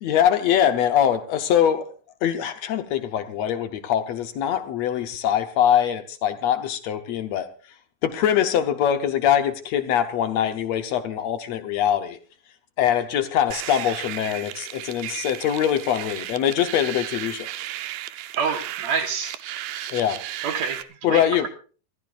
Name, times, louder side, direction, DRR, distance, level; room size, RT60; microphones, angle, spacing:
voice 1, 0.0-1.9 2.2-7.5 8.0-12.2 12.8-17.5 19.9-20.2 21.0-21.5, left 10 dB, 75° left, 1.6 m, -23 dB
sound 1, 13.5-20.8, right 14 dB, 75° right, 2.5 m, -34 dB
voice 2, 18.3-19.3 20.4-21.5, right 6 dB, 60° right, 2.3 m, -27 dB
27.0 x 14.5 x 2.5 m
omnidirectional pair, 4.3 m